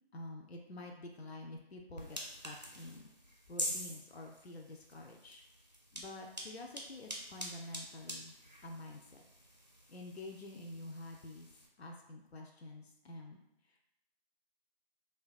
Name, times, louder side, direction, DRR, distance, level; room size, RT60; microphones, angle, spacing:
voice 1, 0.1-3.1 3.5-8.3 8.6-9.2 9.9-11.5 11.8-13.4 13.6-13.9, left 2 dB, 80° left, 1 dB, 0.5 m, -49 dB
sound 1, 1.9-11.7, equal, 45° right, 0.4 m, -46 dB
3.3 x 2.2 x 2.3 m, 0.87 s
figure-of-eight pair, 180°, 31 cm